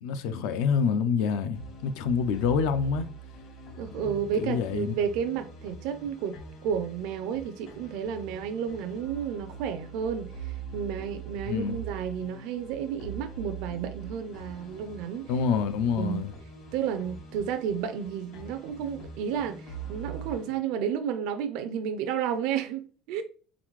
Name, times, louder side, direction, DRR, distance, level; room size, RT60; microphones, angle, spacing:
voice 1, 0.0-3.1 4.0-4.9 11.5-11.8 15.3-16.3, left 6 dB, 85° left, 0.5 m, -27 dB
sound 1, 1.5-20.6, right 5 dB, 60° left, 1.6 m, -43 dB
voice 2, 3.8-6.4 6.6-15.3 16.0-16.2 16.7-23.2, right 8 dB, 75° right, 0.4 m, -32 dB
3.8 x 3.8 x 3.1 m
cardioid pair, 160°, 0 cm